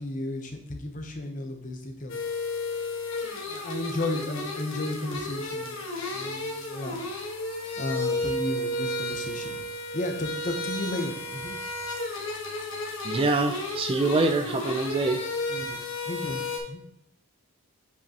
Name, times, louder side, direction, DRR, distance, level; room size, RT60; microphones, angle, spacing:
voice 1, 0.0-2.2 3.2-7.0 7.8-9.6 9.9-11.6 15.5-15.8 16.1-16.8, left 2 dB, 35° left, 4 dB, 0.8 m, -34 dB
sound 1, 2.1-16.6, left 2 dB, 60° left, 1.3 m, -33 dB
voice 2, 13.0-15.2, right 3 dB, 25° right, 5 dB, 0.3 m, -25 dB
7.9 x 5.4 x 2.9 m, 0.73 s
head